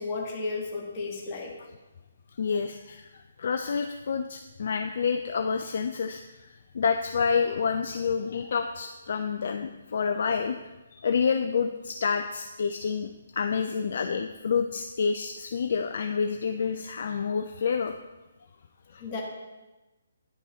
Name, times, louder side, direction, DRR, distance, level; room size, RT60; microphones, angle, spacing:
voice 1, 0.0-1.5 19.0-19.2, left 3 dB, 30° left, -2 dB, 1.4 m, -33 dB
voice 2, 2.4-18.0 18.9-19.0, left 6 dB, 50° left, 6 dB, 0.3 m, -28 dB
9.9 x 5.3 x 2.8 m, 1.1 s
figure-of-eight pair, 140°, 0 cm